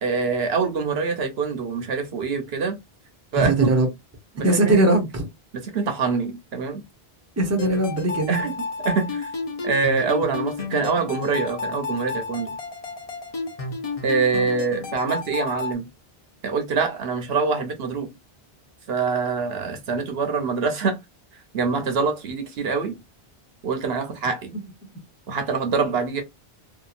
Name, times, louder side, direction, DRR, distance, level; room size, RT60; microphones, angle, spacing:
voice 1, 0.0-2.8 3.3-3.7 4.3-4.8 5.5-6.8 8.3-9.3 9.6-12.6 14.0-15.9 16.4-18.1 18.9-21.0 21.5-23.0 23.6-24.5 25.3-26.2, right 5 dB, 75° right, 1.0 m, -25 dB
voice 2, 3.3-3.9 4.4-5.3 7.4-8.3, right 2 dB, 15° right, 0.7 m, -20 dB
sound 1, 7.6-15.7, left 4 dB, 40° left, 0.7 m, -31 dB
2.8 x 2.4 x 2.4 m
omnidirectional pair, 1.1 m